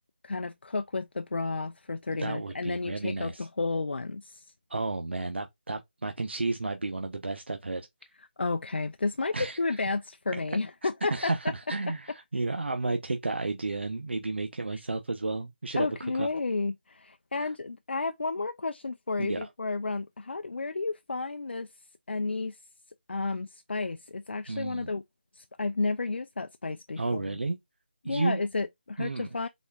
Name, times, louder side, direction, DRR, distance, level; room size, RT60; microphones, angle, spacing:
voice 1, 0.2-4.5 8.4-11.3 14.7-14.8 15.8-21.7 22.1-22.6 23.1-25.0 25.3-27.4 28.0-29.5, left 3 dB, 75° left, 0.5 m, -32 dB
voice 2, 2.2-3.5 4.7-7.8 9.3-9.8 11.1-15.9 16.2-16.3 17.4-17.5 19.2-19.5 24.5-24.9 27.0-27.6 28.0-28.4 29.0-29.3, right 3 dB, 80° right, 0.9 m, -32 dB
4.2 x 3.5 x 3.4 m
figure-of-eight pair, 170°, 6 cm